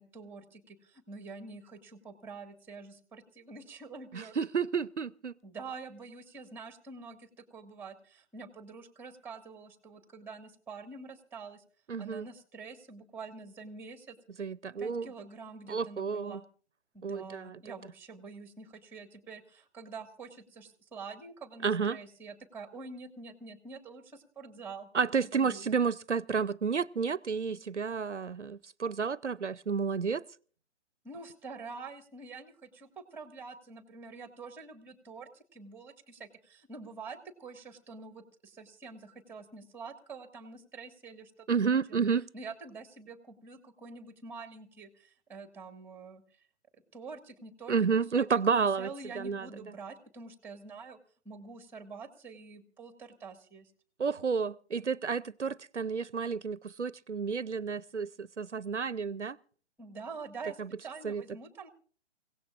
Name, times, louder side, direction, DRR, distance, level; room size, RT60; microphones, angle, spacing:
voice 1, 0.0-4.3 5.4-11.6 12.0-14.2 14.8-16.5 16.9-24.9 25.2-25.7 31.0-41.5 41.9-42.0 42.3-46.4 46.9-47.7 48.1-51.0 51.3-53.7 59.8-61.7, right 4 dB, 5° right, 1.7 m, -46 dB
voice 2, 4.1-5.3 11.9-12.2 14.4-15.1 15.7-16.4 17.0-17.6 21.6-22.0 24.9-30.2 41.5-42.3 47.7-48.9 49.2-49.5 54.0-59.4 60.6-60.7 61.0-61.2, right 5 dB, 90° right, 0.7 m, -31 dB
28.5 x 17.0 x 2.5 m
figure-of-eight pair, 135°, 34 cm